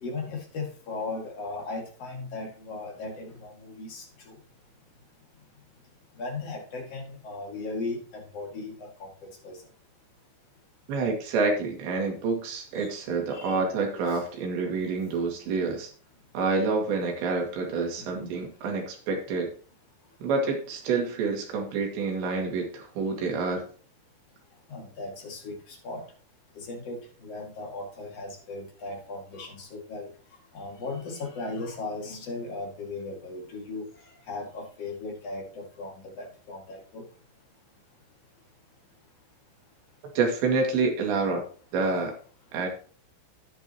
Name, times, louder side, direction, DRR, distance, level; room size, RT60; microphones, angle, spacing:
voice 1, 0.0-4.3 6.2-8.7 9.0-9.1 9.4-9.6 12.7-12.9 13.3-13.6 18.0-18.1 24.7-26.0 26.6-30.1 30.5-37.0, left 3 dB, 45° left, 0 dB, 2.2 m, -37 dB
voice 2, 10.9-15.9 16.3-19.5 20.2-23.7 40.2-41.4 41.7-42.1 42.5-42.7, right 4 dB, 65° right, 2 dB, 4.2 m, -28 dB
10.5 x 10.5 x 3.0 m, 0.41 s
omnidirectional pair, 5.8 m